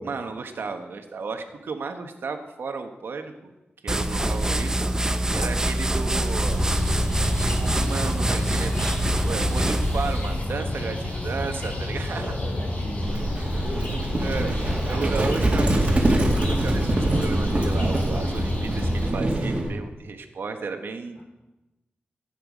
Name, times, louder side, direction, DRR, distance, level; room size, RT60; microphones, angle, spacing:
voice 1, 0.0-3.5 3.8-4.9 5.3-6.6 7.6-8.7 9.1-12.4 14.2-14.5 14.9-21.2, right 4 dB, 80° right, 6 dB, 1.2 m, -33 dB
sound 1, 3.9-10.4, right 1 dB, 15° right, 0.7 m, -25 dB
voice 2, 5.0-5.7 10.7-11.3 12.1-13.8 14.2-15.6 21.2-21.3, left 1 dB, 55° left, -1 dB, 4.2 m, -39 dB
sound 2, 6.4-19.1, left 1 dB, 40° left, 3.5 m, -29 dB
Livestock farm animals working animals, 13.0-19.7, right 1 dB, 30° right, 2.2 m, -24 dB
16.0 x 9.0 x 5.1 m, 1.0 s
wide cardioid pair, 130°, 4 cm